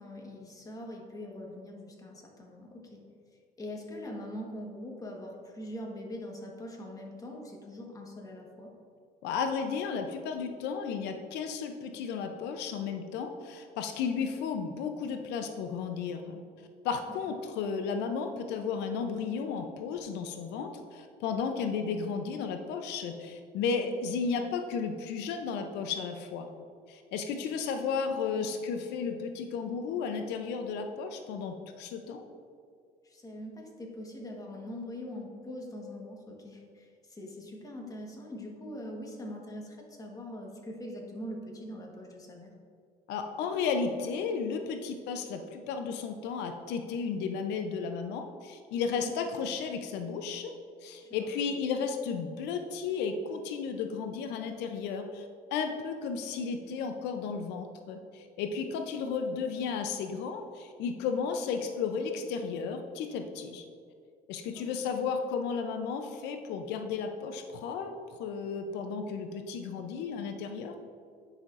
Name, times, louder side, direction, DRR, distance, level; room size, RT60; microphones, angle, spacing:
voice 1, 0.0-3.0 3.6-8.7 17.1-17.2 27.9-28.6 33.0-42.5 49.0-49.1 51.0-51.3 64.5-64.8, left 1 dB, 20° left, 0 dB, 1.3 m, -43 dB
voice 2, 9.2-16.4 16.8-26.5 26.9-32.2 43.1-50.5 50.8-63.7 64.3-70.7, left 5 dB, 90° left, 6 dB, 0.5 m, -34 dB
9.7 x 5.8 x 2.5 m, 2.3 s
cardioid pair, 110°, 17 cm